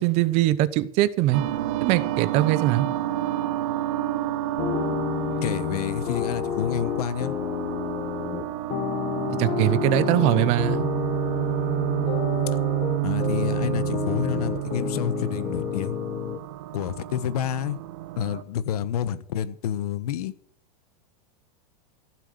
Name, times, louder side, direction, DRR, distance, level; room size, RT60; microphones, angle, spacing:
voice 1, 0.0-1.4 1.8-2.9 9.4-10.9, right 15 dB, 35° right, 0.8 m, -22 dB
sound 1, 1.3-18.4, right 15 dB, 55° right, 1.1 m, -30 dB
sound 2, 4.6-16.4, left 9 dB, 30° left, 1.3 m, -30 dB
voice 2, 5.4-7.4 13.0-16.0 16.7-17.8 18.2-20.3, left 9 dB, 80° left, 1.3 m, -29 dB
15.5 x 7.6 x 7.9 m
supercardioid pair, 170°, 19 cm